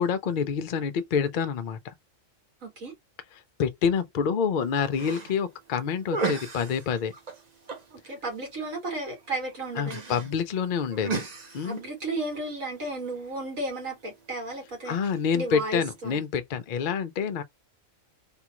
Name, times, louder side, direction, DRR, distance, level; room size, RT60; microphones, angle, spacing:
voice 1, 0.0-1.9 3.6-7.1 9.7-11.2 11.5-11.8 14.9-17.4, left 6 dB, 55° left, 0.5 m, -27 dB
voice 2, 2.6-2.9 7.9-10.2 11.6-15.0 15.3-16.2, right 2 dB, 90° right, 2.2 m, -34 dB
sound 1, 4.6-16.2, right 4 dB, 40° right, 0.8 m, -39 dB
3.7 x 2.3 x 2.9 m
omnidirectional pair, 1.3 m